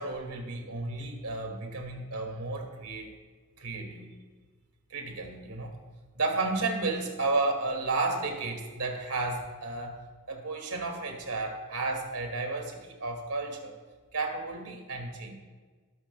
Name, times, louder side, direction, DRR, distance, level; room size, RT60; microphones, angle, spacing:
voice 1, 0.0-3.1 3.6-4.1 4.9-5.7 6.2-10.0 10.3-13.7 14.1-15.3, right 3 dB, 85° right, 3 dB, 2.3 m, -32 dB
19.5 x 13.0 x 2.3 m, 1.4 s
head